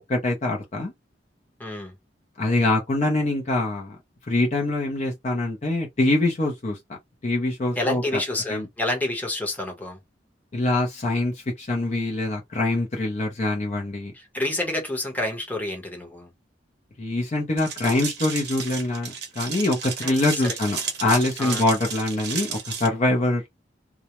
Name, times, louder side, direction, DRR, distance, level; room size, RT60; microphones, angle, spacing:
voice 1, 0.1-0.9 2.4-4.0 4.3-6.8 7.2-8.2 8.5-8.7 10.5-14.1 17.0-23.4, left 2 dB, 40° left, 0.6 m, -24 dB
voice 2, 1.6-1.9 7.8-10.0 14.1-16.3 20.0-20.5 21.4-21.6, left 1 dB, 10° left, 0.8 m, -29 dB
sound 1, 17.6-22.9, right 6 dB, 65° right, 0.7 m, -33 dB
2.2 x 2.0 x 2.9 m
head